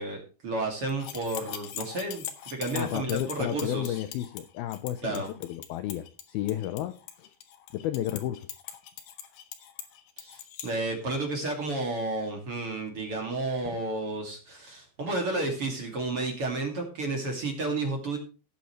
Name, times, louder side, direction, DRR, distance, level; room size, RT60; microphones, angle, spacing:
voice 1, 0.0-4.0 5.0-5.3 10.2-18.2, right 2 dB, 35° right, 2 dB, 2.6 m, -32 dB
sound 1, 0.9-10.7, left 10 dB, 65° left, 2.6 m, -42 dB
voice 2, 2.7-7.3 7.7-8.5, left 13 dB, 85° left, 11 dB, 2.2 m, -32 dB
16.5 x 8.6 x 3.2 m, 0.35 s
omnidirectional pair, 5.3 m